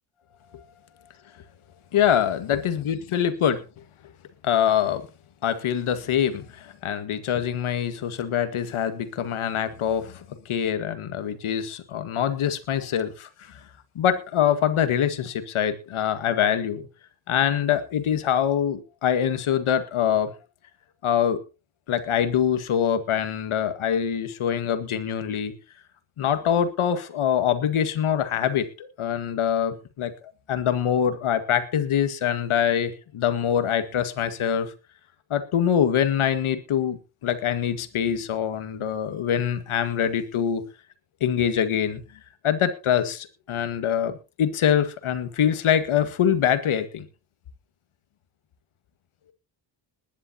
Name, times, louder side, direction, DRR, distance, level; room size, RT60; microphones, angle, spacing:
voice 1, 1.9-3.6 4.4-5.1 5.4-13.6 14.0-16.9 17.3-20.3 21.0-21.4 21.9-25.6 26.2-30.1 30.5-34.7 35.3-40.6 41.2-42.0 42.4-47.1, left 9 dB, 75° left, 10 dB, 1.9 m, -24 dB
20.5 x 11.5 x 2.9 m, 0.29 s
cardioid pair, 60°, 50 cm